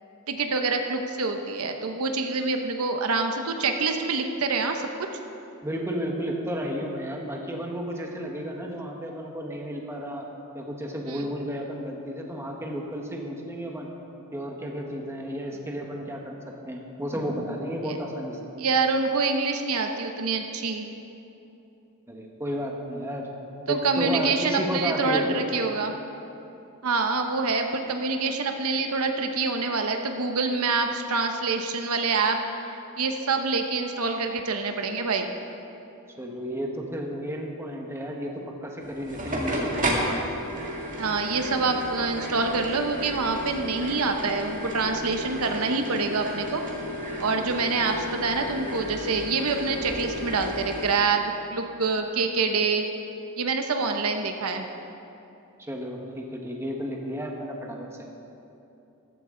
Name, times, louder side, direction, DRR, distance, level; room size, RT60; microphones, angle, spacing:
voice 1, 0.3-4.8 11.1-11.2 17.8-18.0 18.6-20.9 23.7-25.9 26.8-35.3 41.0-46.6 47.2-52.9 53.4-54.7, right 4 dB, 75° right, 5 dB, 0.8 m, -26 dB
voice 2, 5.6-10.3 10.5-13.9 14.3-16.4 16.6-18.4 22.1-23.3 23.7-25.4 36.2-38.3 38.6-39.8 55.6-57.9, equal, 10° right, 0 dB, 1.3 m, -32 dB
sound 1, 38.8-51.0, equal, 35° right, 2.0 m, -32 dB
14.5 x 13.5 x 3.8 m, 2.9 s
head